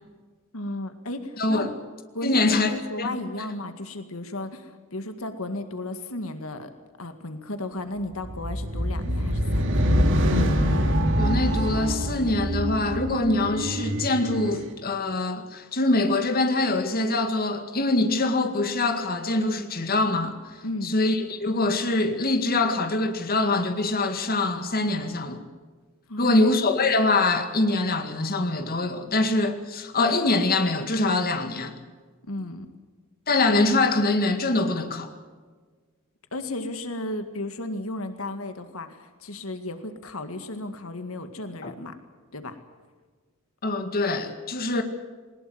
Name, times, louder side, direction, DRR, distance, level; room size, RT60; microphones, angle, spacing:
voice 1, 0.5-1.7 2.1-6.7 7.0-9.8 20.6-21.0 26.1-26.4 32.2-32.7 36.3-41.9 42.3-42.6, left 1 dB, 80° left, 2.0 m, -34 dB
voice 2, 1.4-1.7 2.2-3.2 11.2-25.4 26.2-31.8 33.3-35.1 41.6-41.7 43.6-44.8, left 2 dB, 45° left, 2.0 m, -24 dB
sound 1, 8.2-14.7, equal, 60° right, 3.0 m, -24 dB
21.0 x 20.0 x 7.9 m
head